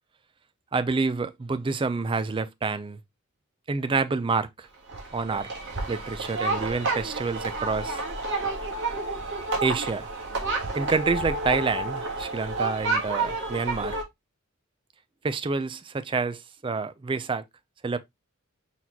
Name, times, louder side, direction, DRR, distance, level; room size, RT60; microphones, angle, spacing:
voice 1, 0.7-3.0 3.7-4.7 5.1-5.5 5.9-8.0 9.6-10.1 10.7-14.0 15.2-17.4 17.8-18.0, right 4 dB, 25° right, 0.4 m, -28 dB
sound 1, 4.9-14.0, right 3 dB, 55° right, 1.5 m, -30 dB
4.3 x 4.0 x 2.9 m
head